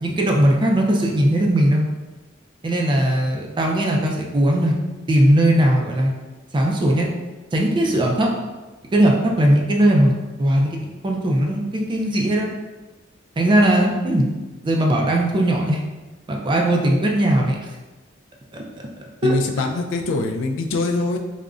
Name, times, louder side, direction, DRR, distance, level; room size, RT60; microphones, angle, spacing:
voice 1, 0.0-1.9 2.6-4.8 5.1-6.1 6.5-7.1 7.5-8.3 8.9-10.1 10.4-12.5 13.4-14.3 14.6-15.8 16.3-17.6 18.5-18.9 19.2-19.4, right 1 dB, 25° right, 0 dB, 0.4 m, -19 dB
voice 2, 19.2-21.2, left 3 dB, 80° left, 4 dB, 0.3 m, -23 dB
3.6 x 2.0 x 2.4 m, 1.2 s
head